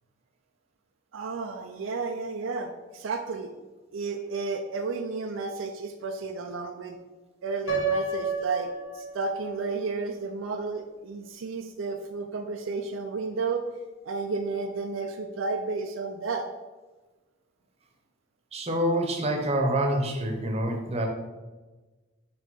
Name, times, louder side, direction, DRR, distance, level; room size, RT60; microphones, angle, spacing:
voice 1, 1.1-3.5 3.9-7.0 7.4-13.7 14.0-16.5, right 4 dB, 70° right, 5 dB, 0.4 m, -32 dB
Piano, 7.7-9.6, right 4 dB, 80° left, 1.3 m, -30 dB
voice 2, 18.5-21.1, right 1 dB, 30° right, 2 dB, 0.9 m, -26 dB
6.2 x 3.3 x 5.3 m, 1.2 s
head